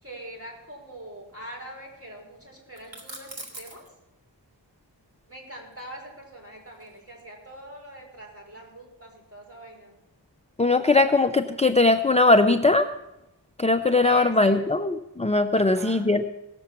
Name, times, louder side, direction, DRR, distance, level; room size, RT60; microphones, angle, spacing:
voice 1, 0.0-3.8 5.3-9.9 14.0-14.8 15.5-16.0, right 1 dB, 30° right, -1 dB, 4.7 m, -43 dB
sound 1, 2.7-3.9 5.7-7.3, right 2 dB, 80° right, 2.3 m, -43 dB
voice 2, 10.6-12.9 13.6-16.2, left 2 dB, 15° left, 9 dB, 0.5 m, -20 dB
17.5 x 6.9 x 7.1 m, 0.96 s
wide cardioid pair, 45°, 44 cm